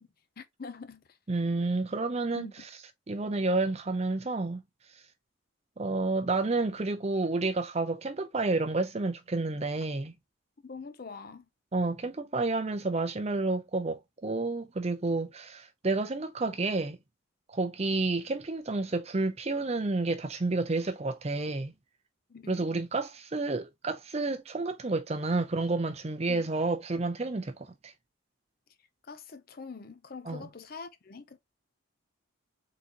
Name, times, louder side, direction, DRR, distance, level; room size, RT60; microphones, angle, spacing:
voice 1, 0.4-1.2 2.4-2.5 10.6-11.5 22.3-22.7 26.3-26.5 29.0-31.4, left 4 dB, 45° left, 0.5 m, -44 dB
voice 2, 1.3-2.5 3.1-4.6 5.8-10.1 11.7-17.0 17.5-21.7 22.5-27.9 30.3-30.4, right 3 dB, 30° right, 0.5 m, -30 dB
4.0 x 3.8 x 2.8 m
head